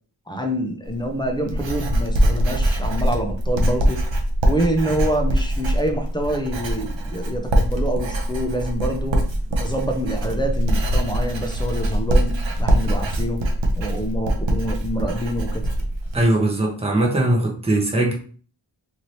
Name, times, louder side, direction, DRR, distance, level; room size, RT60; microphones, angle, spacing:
voice 1, 0.3-4.1 4.5-9.2 9.6-13.4 13.8-15.6, right 1 dB, 10° left, 3 dB, 0.5 m, -26 dB
Writing, 0.8-16.2, equal, 80° right, 0.7 m, -22 dB
voice 2, 16.1-18.1, right 1 dB, 15° right, -1 dB, 0.8 m, -20 dB
2.8 x 2.7 x 3.1 m, 0.42 s
wide cardioid pair, 80°, 45 cm